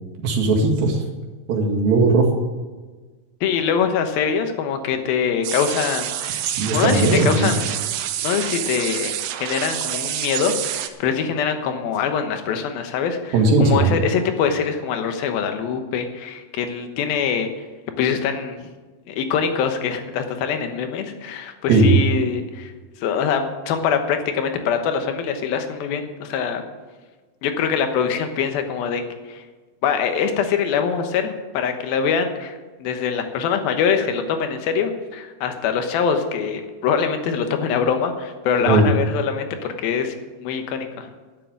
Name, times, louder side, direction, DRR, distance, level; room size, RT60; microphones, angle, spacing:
voice 1, 0.2-1.0 1.5-2.3 6.5-7.5 13.3-14.0 21.7-22.0 38.7-38.9, right 3 dB, 65° right, 0 dB, 3.5 m, -17 dB
voice 2, 3.4-7.7 8.2-9.1 9.4-17.5 18.0-18.7 19.1-22.7 23.0-26.6 27.4-29.0 29.3-29.4 29.8-41.1, left 7 dB, 70° left, 6 dB, 2.8 m, -23 dB
sound 1, 5.4-10.9, right 12 dB, 80° right, 2.7 m, -27 dB
11.5 x 7.6 x 8.8 m, 1.3 s
omnidirectional pair, 4.7 m